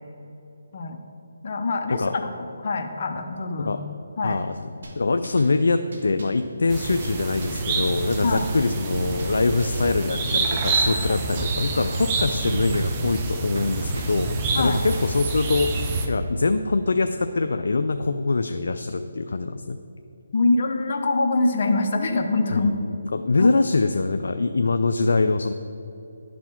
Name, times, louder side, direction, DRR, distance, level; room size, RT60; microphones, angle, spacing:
voice 1, 1.4-2.0 2.4-3.8 4.2-4.4 8.2-8.5 11.1-11.2 14.5-14.8 20.3-22.8 23.4-23.5, left 3 dB, 50° left, 4 dB, 0.8 m, -24 dB
voice 2, 4.2-19.8 22.5-25.5, left 3 dB, 75° left, 8 dB, 0.3 m, -24 dB
sound 1, 4.8-5.5 5.9-6.5 7.0-7.7 8.1-8.7 9.2-9.3 9.6-9.9 10.3-10.8 11.4-12.1 12.5-13.1 13.5-14.3 14.6-15.2, right 1 dB, 70° right, 1.5 m, -41 dB
sound 2, 6.7-16.1, right 3 dB, 25° right, 0.6 m, -27 dB
10.5 x 4.1 x 4.4 m, 2.9 s
hypercardioid pair, 155°, 0 cm